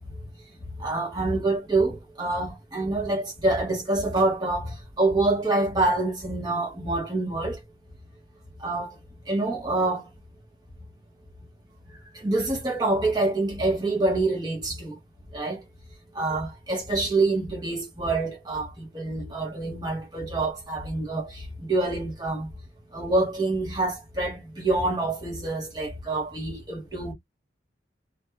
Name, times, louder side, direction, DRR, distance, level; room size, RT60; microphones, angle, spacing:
voice 1, 0.8-7.6 8.6-9.0 9.3-10.1 12.2-15.0 15.3-15.6 16.1-22.5 22.9-27.1, right 2 dB, 20° right, 1.1 m, -26 dB
3.0 x 2.6 x 2.2 m
head